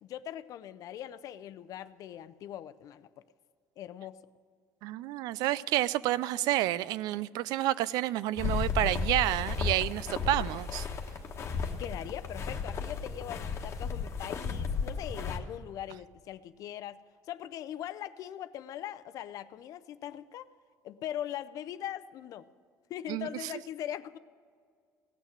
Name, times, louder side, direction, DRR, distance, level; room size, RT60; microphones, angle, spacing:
voice 1, 0.0-3.2 3.8-4.2 11.8-17.0 17.3-20.5 20.8-22.5 22.9-24.2, left 11 dB, 60° left, 14 dB, 0.5 m, -41 dB
voice 2, 4.8-10.9 23.1-23.3, right 15 dB, 80° right, 18 dB, 0.4 m, -29 dB
sound 1, 8.4-15.4, left 5 dB, 45° left, 1.2 m, -34 dB
17.0 x 6.5 x 9.4 m, 2.1 s
cardioid pair, 120°, 7 cm